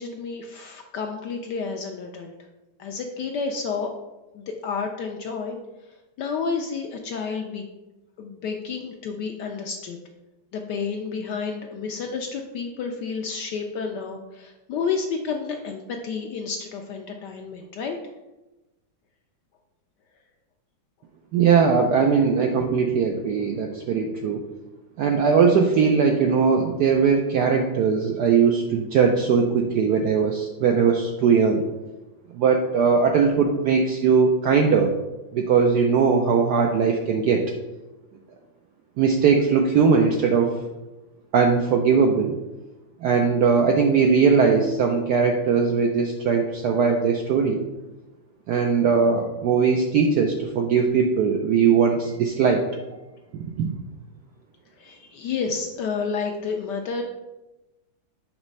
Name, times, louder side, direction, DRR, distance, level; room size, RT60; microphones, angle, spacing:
voice 1, 0.0-2.3 2.8-3.9 4.3-5.6 6.2-7.6 8.2-10.0 10.5-18.0 54.8-57.0, left 5 dB, 75° left, 3 dB, 1.0 m, -30 dB
voice 2, 21.3-24.4 25.0-31.6 32.3-34.9 35.3-37.5 39.0-40.6 41.3-42.4 43.0-47.6 48.5-52.7 53.6-53.7, right 5 dB, 80° right, 2 dB, 0.9 m, -20 dB
6.0 x 3.2 x 5.3 m, 1.0 s
omnidirectional pair, 2.3 m